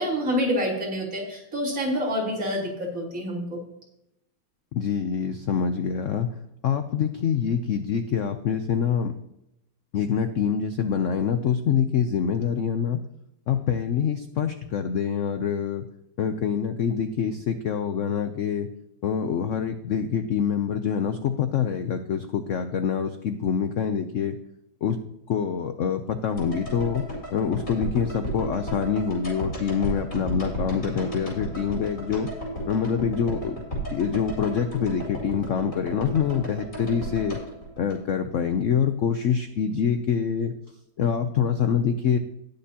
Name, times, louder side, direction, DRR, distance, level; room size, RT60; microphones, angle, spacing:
voice 1, 0.0-3.6, equal, 45° right, -5 dB, 3.8 m, -27 dB
voice 2, 4.7-6.3 6.6-9.1 9.9-13.0 13.5-15.9 16.2-18.7 19.0-24.4 24.8-25.0 25.3-27.0 27.3-32.3 32.7-33.6 33.9-37.4 37.8-40.5 41.0-42.2, left 7 dB, 75° left, 8 dB, 0.7 m, -25 dB
sound 1, 26.4-38.6 38.8-38.9, right 1 dB, 35° left, 4.5 m, -33 dB
19.0 x 6.8 x 2.9 m, 0.81 s
omnidirectional pair, 2.1 m